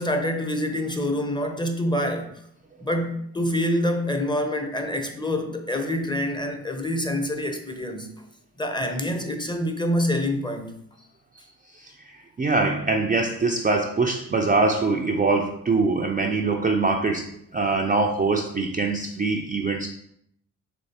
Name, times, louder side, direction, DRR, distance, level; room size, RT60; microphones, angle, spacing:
voice 1, 0.0-2.4 2.8-8.2 8.6-10.8, left 1 dB, 10° left, 0.7 m, -26 dB
voice 2, 11.7-19.9, right 3 dB, 20° right, 0.4 m, -23 dB
4.3 x 3.1 x 2.8 m
hypercardioid pair, 40°, 39 cm